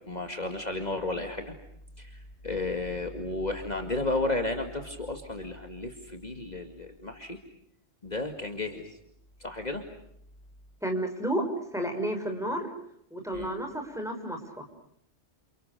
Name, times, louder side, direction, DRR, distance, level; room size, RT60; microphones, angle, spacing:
voice 1, 0.1-1.5 2.0-7.4 8.0-9.0 9.4-9.9 13.3-13.5, left 2 dB, 35° left, 5 dB, 2.4 m, -33 dB
voice 2, 10.8-11.4 11.7-12.7 13.1-14.6, right 1 dB, ahead, 3 dB, 5.9 m, -31 dB
30.0 x 29.0 x 6.8 m, 0.73 s
omnidirectional pair, 1.2 m